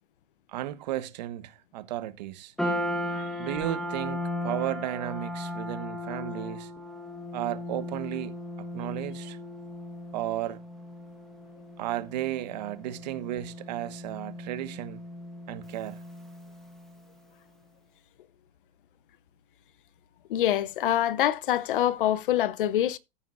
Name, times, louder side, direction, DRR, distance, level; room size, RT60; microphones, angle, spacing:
voice 1, 0.5-2.5 3.4-6.7 7.3-8.3 8.7-9.4 10.1-10.6 11.8-15.0 15.5-16.0, right 13 dB, 45° right, 1.3 m, -34 dB
sound 1, 2.6-17.0, left 1 dB, ahead, 1.4 m, -36 dB
voice 2, 20.3-23.0, left 12 dB, 60° left, 0.9 m, -25 dB
14.5 x 9.3 x 2.6 m
supercardioid pair, 165°, 29 cm